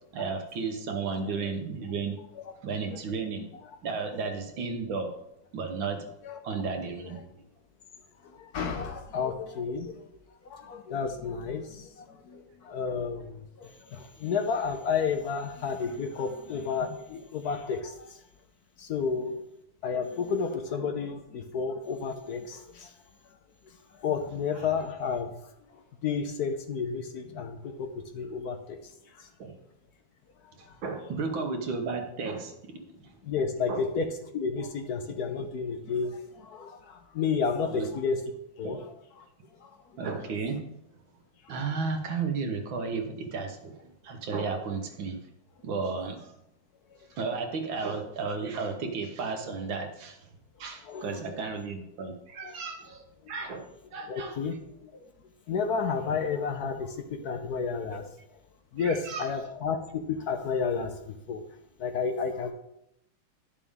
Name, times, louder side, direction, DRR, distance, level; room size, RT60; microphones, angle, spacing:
voice 1, 0.1-2.2 2.6-3.5 3.8-5.1 5.5-6.1 6.4-7.2 24.5-24.7 29.4-29.6 30.6-32.8 33.7-33.9 37.7-37.9 38.6-38.8 40.0-40.7 41.5-45.2 45.6-46.3 47.2-50.3 50.6-54.4 57.9-58.0 58.8-59.3, right 4 dB, 80° right, 5 dB, 1.9 m, -33 dB
voice 2, 8.4-9.9 10.5-18.1 18.8-19.4 19.8-22.9 24.0-25.3 26.0-28.8 33.3-34.1 34.3-38.2 38.6-38.8 50.9-51.2 52.4-52.6 54.1-54.5 55.5-58.0 58.7-60.9 61.3-61.4 61.8-62.5, left 5 dB, 65° left, 6 dB, 1.1 m, -31 dB
11.0 x 6.9 x 3.6 m, 0.81 s
omnidirectional pair, 2.1 m